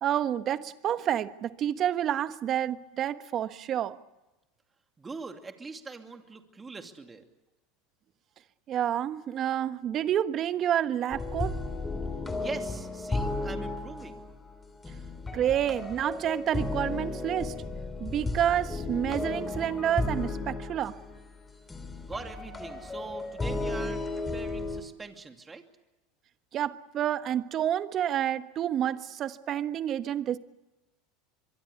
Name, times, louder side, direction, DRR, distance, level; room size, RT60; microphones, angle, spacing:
voice 1, 0.0-4.0 8.7-11.6 15.3-17.6 18.0-21.0 26.5-30.4, right 10 dB, 40° right, 1.3 m, -29 dB
voice 2, 5.0-7.2 12.4-14.2 22.0-25.6, right 4 dB, 20° right, 2.6 m, -42 dB
sound 1, 11.1-24.8, left 2 dB, 15° left, 3.5 m, -34 dB
24.0 x 23.5 x 8.3 m
supercardioid pair, 110°, 0 cm